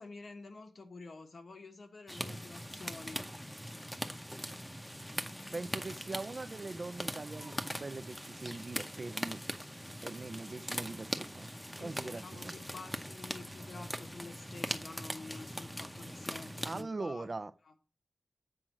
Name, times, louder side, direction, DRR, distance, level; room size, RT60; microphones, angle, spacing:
voice 1, 0.0-3.2 10.4-11.0 11.8-17.3 17.6-17.7, left 3 dB, 65° left, 1.4 m, -49 dB
sound 1, 2.1-16.8, equal, 5° left, 0.8 m, -41 dB
voice 2, 5.5-9.4 10.0-11.5 11.8-12.6 16.6-17.5, right 3 dB, 40° right, 0.5 m, -41 dB
7.7 x 5.0 x 7.4 m
wide cardioid pair, 120°, 0 cm